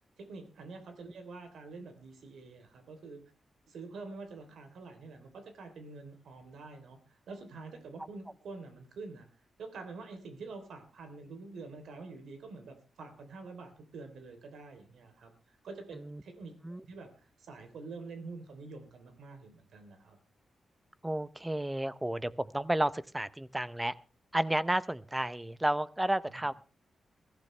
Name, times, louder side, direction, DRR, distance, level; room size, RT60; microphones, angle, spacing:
voice 1, 0.2-3.2 3.7-9.3 9.6-16.5 16.8-20.2 26.3-26.5, right 3 dB, 80° right, 6 dB, 3.3 m, -47 dB
voice 2, 21.0-23.9 24.3-26.5, right 1 dB, 10° right, 16 dB, 0.6 m, -32 dB
22.0 x 15.0 x 3.3 m, 0.35 s
wide cardioid pair, 175°, 0 cm